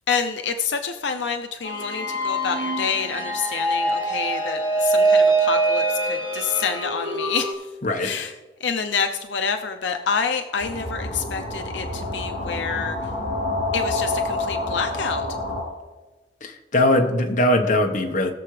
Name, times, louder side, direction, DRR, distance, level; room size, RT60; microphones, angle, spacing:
voice 1, 0.1-7.5 8.0-8.3 8.6-13.0 13.7-15.3, left 6 dB, 90° left, 6 dB, 0.6 m, -27 dB
sound 1, 1.6-7.5, right 2 dB, 25° right, 2.7 m, -23 dB
sound 2, 10.6-15.6, left 2 dB, 70° left, 4.0 m, -28 dB
voice 2, 16.4-18.3, left 1 dB, 45° left, 3 dB, 1.2 m, -20 dB
20.5 x 6.9 x 3.3 m, 1.2 s
head